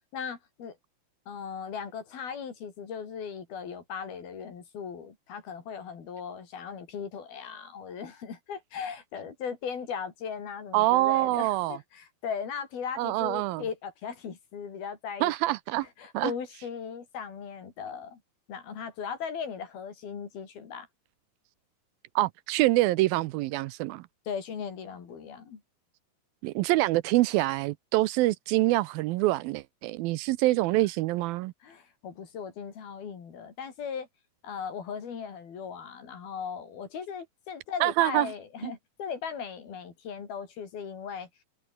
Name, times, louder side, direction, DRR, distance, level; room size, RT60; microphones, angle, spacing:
voice 1, 0.1-0.8 1.3-15.3 16.0-18.2 18.5-20.9 24.3-25.6 31.6-34.1 34.4-41.3, left 7 dB, 75° left, 5.7 m, -38 dB
voice 2, 10.7-11.8 13.0-13.6 15.2-15.9 16.1-16.3 22.2-24.1 26.4-31.5 37.8-38.3 38.6-38.7, right 18 dB, 80° right, 2.4 m, -25 dB
omnidirectional pair, 4.4 m